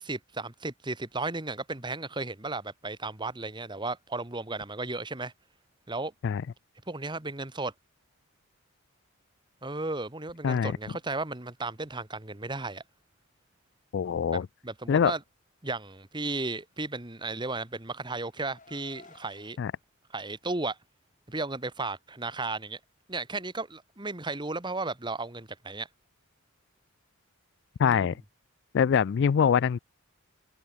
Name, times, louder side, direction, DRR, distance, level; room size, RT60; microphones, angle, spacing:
voice 1, 0.0-5.3 5.9-6.1 6.9-7.7 9.6-12.8 14.3-15.2 15.6-19.6 20.1-20.8 21.3-22.8 23.1-25.9 27.8-28.1, right 3 dB, 20° right, 1.6 m, -34 dB
voice 2, 13.9-14.5 14.9-15.1 19.6-19.7 27.8-28.2 28.7-29.8, left 7 dB, 55° left, 0.3 m, -24 dB
Car, 17.0-19.5, left 4 dB, 35° left, 5.1 m, -56 dB
head